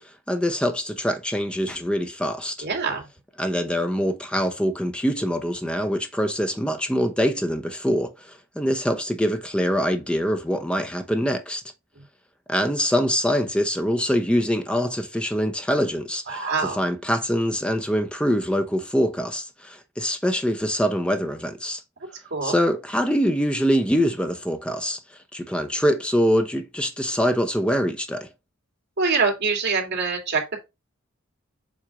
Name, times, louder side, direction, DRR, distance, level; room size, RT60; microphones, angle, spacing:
voice 1, 0.3-2.6 3.4-11.6 12.5-21.8 22.4-25.0 25.3-28.3, equal, 5° left, 0.8 m, -24 dB
voice 2, 2.6-3.1 16.3-16.8 22.3-22.6 29.0-30.6, right 4 dB, 55° right, 2.8 m, -24 dB
7.4 x 2.7 x 4.9 m
head